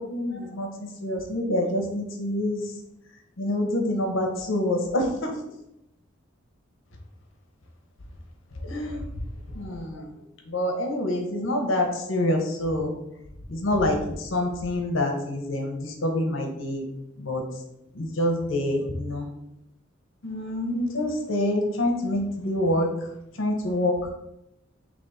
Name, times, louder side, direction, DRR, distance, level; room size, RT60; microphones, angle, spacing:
voice 1, 0.0-2.6 3.4-5.3 8.6-9.0 9.5-10.1 10.5-12.9 13.5-16.9 17.2-17.4 17.9-19.3 20.2-23.1 23.4-24.1, left 1 dB, 70° left, 3 dB, 0.9 m, -26 dB
3.5 x 3.0 x 4.1 m, 0.83 s
head